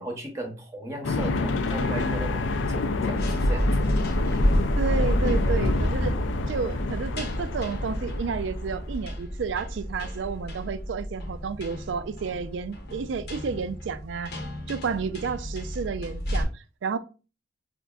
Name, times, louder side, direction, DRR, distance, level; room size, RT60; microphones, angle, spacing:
voice 1, 0.0-4.0, right 1 dB, 15° right, 0.7 m, -37 dB
sound 1, 1.0-9.1, left 3 dB, 80° left, 0.4 m, -28 dB
sound 2, 3.2-16.4, equal, 60° left, 0.8 m, -29 dB
voice 2, 4.8-6.1 6.5-14.3 14.7-17.0, right 5 dB, 75° right, 0.4 m, -31 dB
5.1 x 2.5 x 2.3 m
head